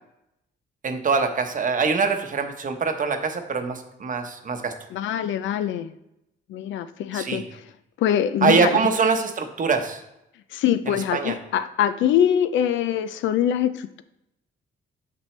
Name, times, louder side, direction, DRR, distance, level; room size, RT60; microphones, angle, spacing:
voice 1, 0.8-4.7 7.1-7.4 8.4-10.0 10.9-11.4, right 5 dB, 40° right, 6 dB, 0.9 m, -23 dB
voice 2, 4.9-5.9 6.5-7.6 8.0-8.7 10.5-14.0, left 10 dB, 75° left, 13 dB, 0.4 m, -23 dB
6.0 x 5.9 x 3.3 m, 0.86 s
cardioid pair, 90°, 20 cm